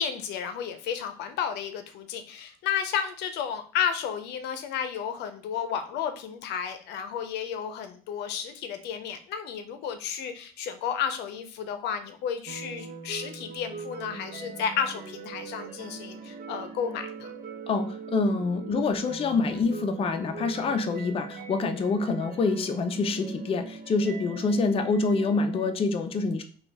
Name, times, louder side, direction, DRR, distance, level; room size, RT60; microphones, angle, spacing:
voice 1, 0.0-17.3, left 8 dB, 80° left, 9 dB, 0.6 m, -32 dB
sound 1, 12.5-25.7, right 5 dB, 55° right, 0.8 m, -41 dB
voice 2, 17.7-26.4, left 3 dB, 35° left, 6 dB, 0.5 m, -26 dB
3.3 x 2.3 x 4.0 m, 0.41 s
cardioid pair, 110°, 17 cm